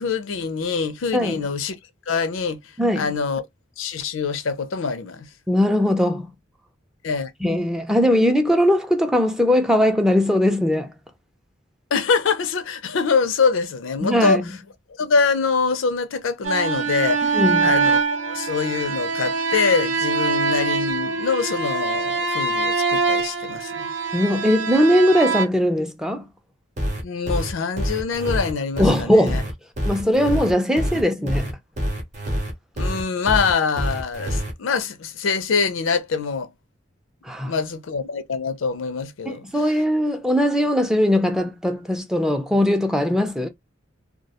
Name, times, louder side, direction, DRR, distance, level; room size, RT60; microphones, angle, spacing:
voice 1, 0.0-1.8 2.1-2.6 3.0-3.4 3.8-5.3 7.0-7.3 11.9-14.4 15.0-23.9 27.0-29.4 32.8-36.5 37.4-39.5, left 5 dB, 85° left, 0.5 m, -24 dB
voice 2, 2.8-3.1 5.5-6.3 7.4-10.9 14.0-14.4 17.3-17.7 24.1-26.3 28.8-29.5 29.8-31.6 37.2-37.5 39.3-43.5, equal, 5° right, 0.4 m, -20 dB
sound 1, 16.4-25.5, right 4 dB, 75° right, 0.5 m, -23 dB
sound 2, 26.8-34.5, equal, 35° right, 0.7 m, -26 dB
2.3 x 2.1 x 2.8 m
head